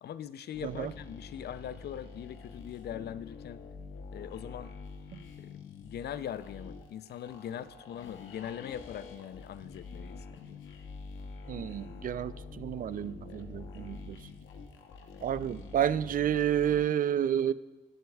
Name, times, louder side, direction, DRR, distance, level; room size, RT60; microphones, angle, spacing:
voice 1, 0.0-3.6 4.1-4.7 5.4-10.6, left 9 dB, 55° left, 0.5 m, -41 dB
sound 1, 0.5-16.8, left 4 dB, 80° left, 1.0 m, -46 dB
voice 2, 11.5-14.2 15.2-17.5, right 10 dB, 45° right, 0.4 m, -30 dB
17.5 x 7.7 x 2.3 m
cardioid pair, 90°, 20 cm